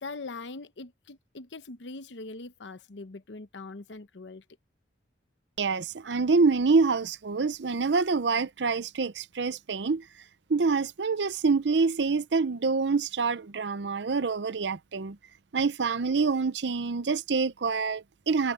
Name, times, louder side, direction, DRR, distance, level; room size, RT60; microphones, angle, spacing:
voice 1, 0.0-4.4, left 3 dB, 85° left, 0.9 m, -42 dB
voice 2, 5.6-10.0 10.5-15.2 15.5-18.5, right 4 dB, 75° right, 0.6 m, -26 dB
head